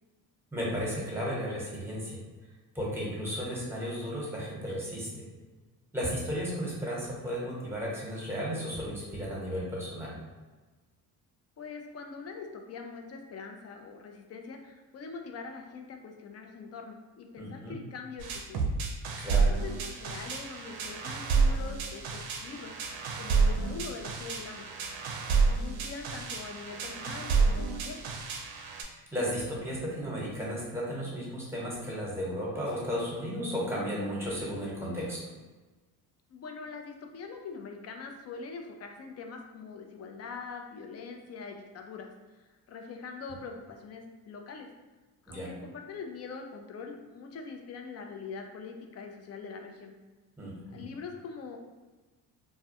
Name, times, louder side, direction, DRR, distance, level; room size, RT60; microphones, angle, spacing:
voice 1, 0.5-2.2 2.7-5.2 5.9-10.1 17.4-17.8 19.2-19.5 29.1-35.2 45.3-45.5 50.4-50.9, equal, 5° right, -5 dB, 1.0 m, -34 dB
voice 2, 11.6-18.7 19.3-22.7 23.2-24.7 25.3-28.0 36.3-42.1 42.4-44.7 45.3-49.9 50.7-51.6, left 5 dB, 40° left, 3 dB, 0.4 m, -43 dB
sound 1, 18.2-28.8, right 4 dB, 65° right, 0.5 m, -29 dB
2.2 x 2.1 x 2.8 m, 1.2 s
supercardioid pair, 80°, 41 cm